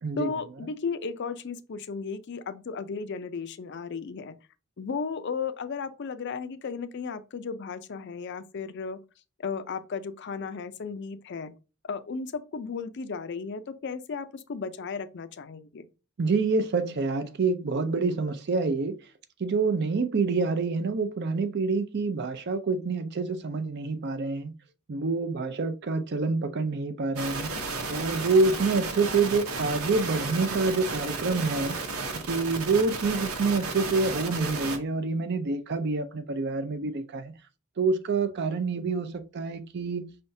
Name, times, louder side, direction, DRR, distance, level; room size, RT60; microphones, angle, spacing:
voice 1, 0.2-4.3 4.8-9.0 9.4-11.5 11.9-15.9, left 5 dB, 55° left, 0.4 m, -35 dB
voice 2, 16.2-18.9 19.4-24.5 24.9-27.5 27.9-31.8 32.3-37.3 37.8-40.1, right 4 dB, 50° right, 0.5 m, -27 dB
sound 1, 27.2-34.8, right 3 dB, 90° right, 0.9 m, -33 dB
5.5 x 3.4 x 2.6 m
head